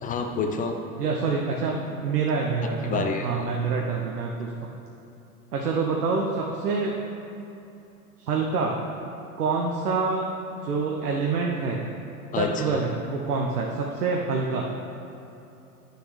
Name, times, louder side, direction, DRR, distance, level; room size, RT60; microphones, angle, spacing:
voice 1, 0.0-0.7 2.8-3.3 12.3-12.8, left 5 dB, 20° left, 4 dB, 0.4 m, -28 dB
voice 2, 1.0-4.7 5.5-6.9 8.2-8.8 9.4-10.3 10.6-11.8 12.4-14.7, right 4 dB, 80° right, -1 dB, 0.9 m, -26 dB
9.5 x 6.8 x 3.2 m, 2.9 s
figure-of-eight pair, 85°, 46 cm